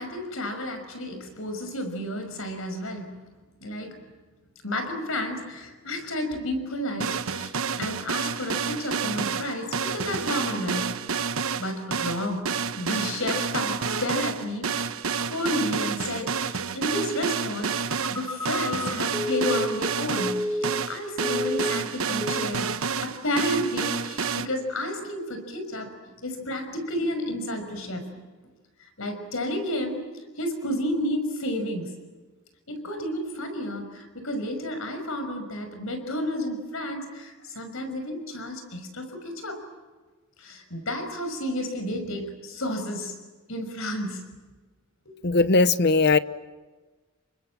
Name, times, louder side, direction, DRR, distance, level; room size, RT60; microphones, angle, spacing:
voice 1, 0.0-3.2 3.6-4.0 4.6-10.9 11.6-14.9 15.2-28.2 29.0-30.1 30.4-31.9 32.7-39.6 40.4-43.1 43.5-44.2 45.1-45.2, left 1 dB, 70° left, 7 dB, 5.9 m, -31 dB
sound 1, 7.0-24.5, right 6 dB, 70° right, 1.1 m, -29 dB
Telephone, 17.9-20.9 21.2-21.9 22.2-22.5, left 1 dB, 10° left, 4.0 m, -30 dB
voice 2, 45.2-46.2, left 3 dB, 50° left, 14 dB, 0.9 m, -19 dB
29.5 x 24.5 x 7.5 m, 1.3 s
head